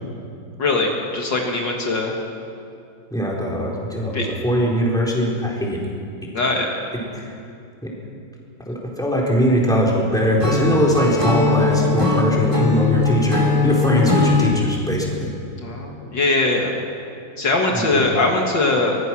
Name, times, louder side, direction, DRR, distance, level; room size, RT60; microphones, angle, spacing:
voice 1, 0.6-2.1 4.1-4.3 6.3-6.7 15.6-16.7 17.4-19.0, left 2 dB, 60° left, 0 dB, 2.5 m, -21 dB
voice 2, 3.1-5.8 7.1-7.3 7.8-7.9 8.7-15.3 17.7-18.0, equal, ahead, -4 dB, 4.0 m, -21 dB
Acoustic guitar / Strum, 10.4-14.5, left 4 dB, 15° right, 2.8 m, -19 dB
24.0 x 20.0 x 6.2 m, 2.5 s
omnidirectional pair, 2.3 m